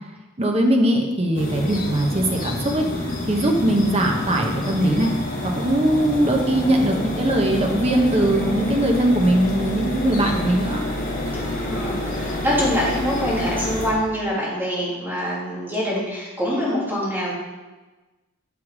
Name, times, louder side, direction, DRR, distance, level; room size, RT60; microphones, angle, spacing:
voice 1, 0.4-5.1 5.4-10.9, right 1 dB, 30° right, 2 dB, 1.0 m, -20 dB
sound 1, 1.3-13.9, left 1 dB, 45° left, 1.3 m, -27 dB
voice 2, 11.3-17.3, equal, 10° right, -7 dB, 2.2 m, -25 dB
7.0 x 4.9 x 4.8 m, 1.2 s
head